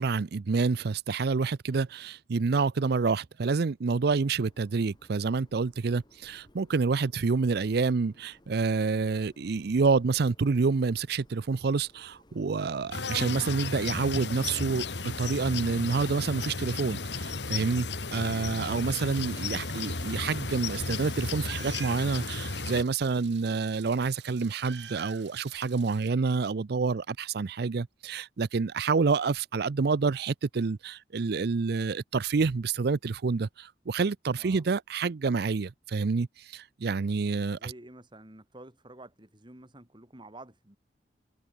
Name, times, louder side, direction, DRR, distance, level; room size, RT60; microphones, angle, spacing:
voice 1, 0.0-14.9 15.2-37.7, right 4 dB, 65° right, 0.5 m, -28 dB
Train, 4.0-22.6, left 2 dB, 25° left, 4.4 m, -55 dB
sound 1, 12.9-22.8, left 4 dB, 80° left, 2.4 m, -34 dB
Meow, 19.1-26.1, right 9 dB, 90° right, 4.8 m, -48 dB
voice 2, 34.4-34.7 37.6-40.8, right 1 dB, 25° right, 3.8 m, -50 dB
head